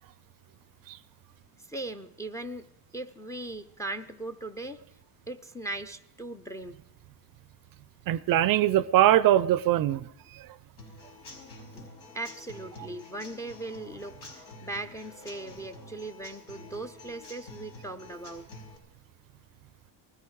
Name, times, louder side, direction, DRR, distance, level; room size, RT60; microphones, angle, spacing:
voice 1, 1.6-2.6 2.9-4.8 5.3-6.8 11.7-18.4, right 2 dB, 5° left, 0.5 m, -39 dB
voice 2, 8.1-10.0, right 13 dB, 50° right, 0.5 m, -22 dB
Human voice / Acoustic guitar / Drum, 10.8-18.8, left 2 dB, 85° left, 5.5 m, -48 dB
20.0 x 14.0 x 4.7 m
cardioid pair, 135°, 47 cm